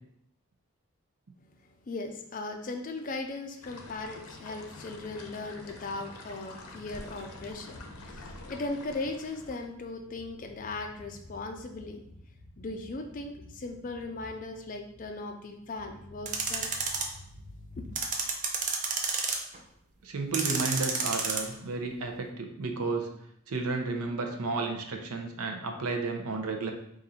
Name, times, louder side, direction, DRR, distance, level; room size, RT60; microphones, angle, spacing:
voice 1, 1.4-12.1 12.6-16.7 17.7-17.9, left 2 dB, 35° left, 5 dB, 0.4 m, -38 dB
sound 1, 3.6-9.7, left 2 dB, 80° left, 0.7 m, -46 dB
sound 2, 9.4-18.1, left 1 dB, 15° right, 0.8 m, -52 dB
sound 3, 16.2-17.0 17.9-19.6 20.3-21.4, right 5 dB, 35° right, 0.5 m, -30 dB
voice 2, 20.0-23.1 23.5-26.7, right 3 dB, 80° right, 4 dB, 0.6 m, -32 dB
3.9 x 2.5 x 4.2 m, 0.75 s
head